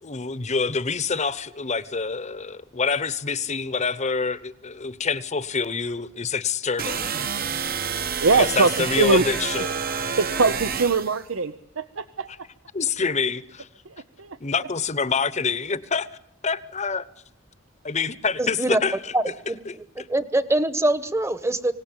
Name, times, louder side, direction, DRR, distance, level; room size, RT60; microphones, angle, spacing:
voice 1, 0.0-7.1 8.3-9.7 12.7-13.7 14.4-16.1 16.4-17.1 17.8-19.1 19.7-20.1, left 5 dB, 35° left, 1.0 m, -26 dB
sound 1, 6.8-11.2, right 6 dB, 50° right, 1.2 m, -28 dB
voice 2, 8.2-9.2 10.2-12.3 13.8-14.4, right 4 dB, 85° right, 0.9 m, -22 dB
voice 3, 18.4-18.8 19.1-19.6 20.0-21.7, right 1 dB, 15° right, 1.2 m, -23 dB
25.0 x 18.0 x 9.0 m
head